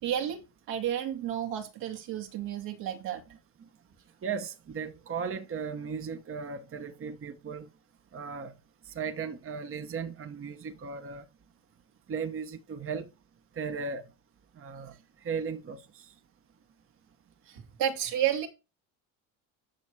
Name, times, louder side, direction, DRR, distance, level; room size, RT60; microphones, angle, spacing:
voice 1, 0.0-3.2 17.5-18.5, right 10 dB, 75° right, 2.8 m, -31 dB
voice 2, 4.2-7.7 8.1-8.5 8.9-11.2 12.1-13.1 13.6-14.1 14.6-15.0 15.2-16.1, right 6 dB, 30° right, 1.1 m, -36 dB
10.5 x 6.3 x 4.6 m
supercardioid pair, 100°, 42 cm